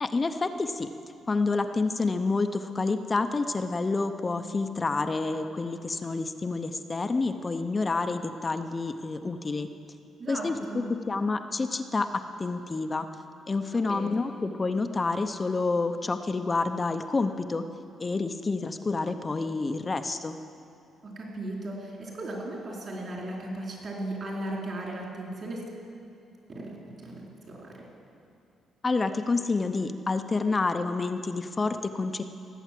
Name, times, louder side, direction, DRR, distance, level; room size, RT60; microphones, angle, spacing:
voice 1, 0.0-0.9 1.3-9.7 10.3-13.1 13.5-17.6 18.0-20.4 28.8-32.2, left 3 dB, 30° left, 8 dB, 0.7 m, -28 dB
voice 2, 10.2-10.9 13.7-14.1 21.0-25.6 26.5-26.8 27.0-27.7, right 1 dB, 45° right, -2 dB, 3.8 m, -36 dB
18.0 x 8.0 x 7.5 m, 2.6 s
cardioid pair, 90°, 0 cm